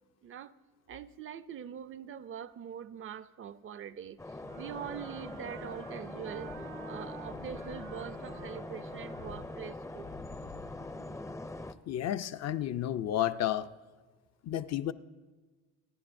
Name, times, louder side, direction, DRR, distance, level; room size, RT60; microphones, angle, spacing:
voice 1, 0.2-0.5 0.9-6.5 6.9-10.2, right 8 dB, 45° right, 0.5 m, -43 dB
sound 1, 4.2-11.7, left 2 dB, 10° left, 0.4 m, -43 dB
sound 2, 4.4-5.9 6.2-11.5 11.8-11.9, left 6 dB, 75° left, 2.5 m, -54 dB
Wind instrument woodwind instrument, 4.4-9.8, right 7 dB, 75° right, 0.8 m, -50 dB
voice 2, 11.9-13.7 14.4-14.9, left 12 dB, 60° left, 0.5 m, -31 dB
26.5 x 10.0 x 2.6 m
cardioid pair, 90°, 30 cm